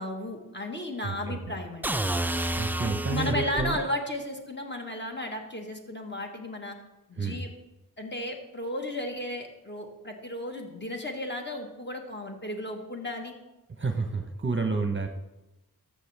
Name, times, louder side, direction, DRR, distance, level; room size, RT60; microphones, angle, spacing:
voice 1, 0.0-2.0 3.1-6.8 7.1-7.5 8.0-13.4, left 1 dB, 30° left, 2 dB, 1.4 m, -34 dB
voice 2, 1.0-1.5 2.6-3.8 7.1-7.4 13.8-15.1, right 4 dB, 30° right, 5 dB, 0.8 m, -30 dB
sound 1, 1.8-3.8, right 1 dB, 5° right, 0.4 m, -29 dB
13.0 x 6.8 x 3.3 m, 1.0 s
wide cardioid pair, 40°, 37 cm